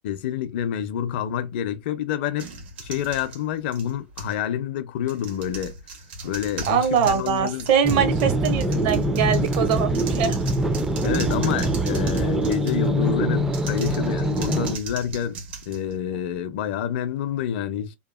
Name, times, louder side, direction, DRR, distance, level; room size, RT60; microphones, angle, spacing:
voice 1, 0.0-2.5 2.8-5.7 6.2-7.7 11.0-15.4 15.7-17.9, left 9 dB, 65° left, 0.5 m, -28 dB
sound 1, 2.4-4.4 5.0-12.9 13.5-16.4, right 3 dB, 75° right, 1.2 m, -38 dB
voice 2, 6.7-10.4, right 8 dB, 55° right, 0.8 m, -23 dB
sound 2, 7.8-14.8, right 1 dB, 10° right, 0.3 m, -24 dB
2.8 x 2.4 x 2.3 m
supercardioid pair, 140°, 6 cm